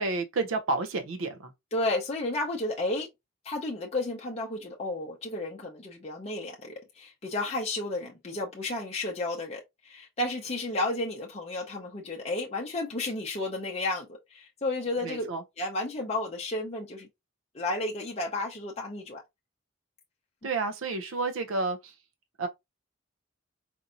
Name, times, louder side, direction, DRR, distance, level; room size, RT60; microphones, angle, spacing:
voice 1, 0.0-1.5 15.0-15.4 20.4-21.9 22.4-22.5, right 3 dB, 85° right, 0.6 m, -30 dB
voice 2, 1.7-3.1 3.4-15.3 15.6-17.1 17.5-19.2, left 2 dB, 30° left, 0.6 m, -32 dB
4.3 x 2.6 x 2.5 m
head